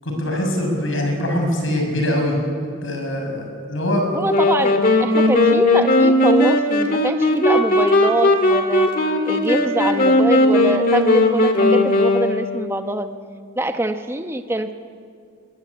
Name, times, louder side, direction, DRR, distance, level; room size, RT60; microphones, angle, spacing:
voice 1, 0.0-2.4 2.8-4.0, left 1 dB, 75° left, 2 dB, 6.7 m, -23 dB
voice 2, 4.1-8.9 9.2-13.1 13.6-14.7, right 1 dB, 10° right, 7 dB, 0.9 m, -24 dB
sound 1, 4.3-12.7, left 1 dB, 45° left, 2.2 m, -17 dB
23.0 x 21.0 x 8.6 m, 2.2 s
head